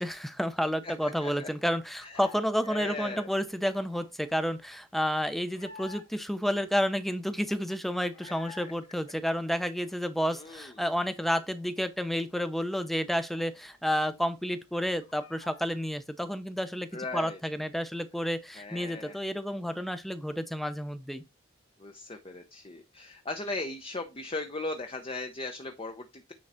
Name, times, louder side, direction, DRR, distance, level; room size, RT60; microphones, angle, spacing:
voice 1, 0.0-21.2, equal, ahead, 0.7 m, -30 dB
voice 2, 0.8-1.5 2.0-2.1 2.7-3.3 10.3-10.7 16.9-17.4 18.6-19.2 21.8-26.3, left 2 dB, 30° left, 0.9 m, -38 dB
sound 1, 1.0-2.6 2.8-6.4 6.8-6.9 7.1-8.7 9.0-10.7 11.1-11.2 11.5-13.9 14.2-14.3 14.6-15.8, left 4 dB, 70° left, 2.2 m, -52 dB
9.6 x 3.9 x 4.3 m
head